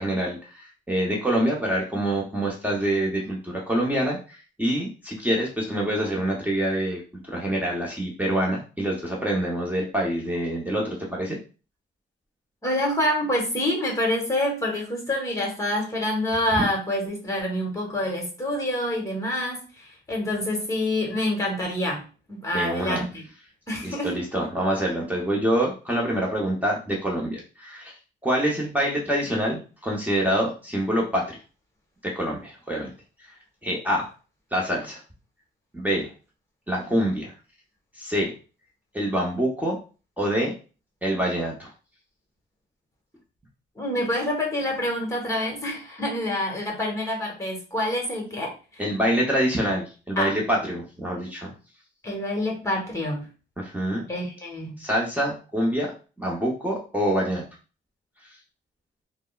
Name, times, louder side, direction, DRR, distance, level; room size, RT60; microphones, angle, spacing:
voice 1, 0.0-7.0 7.3-11.4 22.5-23.0 23.8-27.9 28.2-31.4 32.0-32.9 33.6-34.1 34.5-35.0 35.7-36.1 36.7-37.3 38.0-38.3 38.9-39.8 40.2-40.5 41.0-41.7 48.8-51.5 53.6-54.1 54.8-55.9 56.2-57.5, right 1 dB, 10° right, -3 dB, 0.8 m, -26 dB
voice 2, 12.6-22.0 22.3-23.2 23.7-24.2 43.8-48.8 50.2-50.3 52.0-53.3 54.1-54.8, left 1 dB, 15° left, -1 dB, 1.2 m, -27 dB
3.4 x 2.0 x 2.3 m, 0.35 s
cardioid pair, 90°, 20 cm